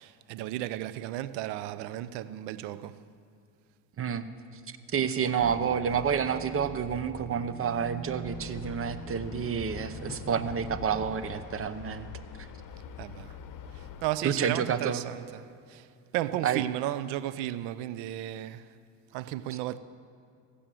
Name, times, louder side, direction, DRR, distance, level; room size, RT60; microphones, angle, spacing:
voice 1, 0.0-3.0 13.0-13.4 13.7-15.9 16.1-18.7 19.1-19.8, right 13 dB, 75° right, 0.7 m, -34 dB
voice 2, 4.9-12.1 12.4-12.5 14.2-15.0 16.4-16.6, right 7 dB, 30° right, 0.8 m, -29 dB
sound 1, 5.4-11.2, equal, 5° left, 0.5 m, -44 dB
sound 2, 8.2-14.1, left 7 dB, 50° left, 1.1 m, -44 dB
15.5 x 8.5 x 7.6 m
supercardioid pair, 90°, 42 cm